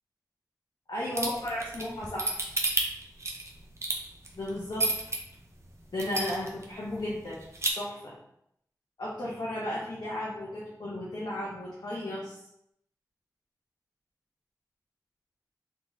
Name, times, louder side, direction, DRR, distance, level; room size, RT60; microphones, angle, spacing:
voice 1, 0.9-2.4 4.3-4.9 5.9-7.4 7.8-8.1 9.0-12.4, left 1 dB, 85° left, -6 dB, 1.0 m, -34 dB
sound 1, 1.1-5.2 5.6-5.7 6.0-6.6 7.0-7.1 7.3-7.7, right 2 dB, 40° right, 0.8 m, -29 dB
3.9 x 3.1 x 3.6 m, 0.76 s
wide cardioid pair, 50°, 7 cm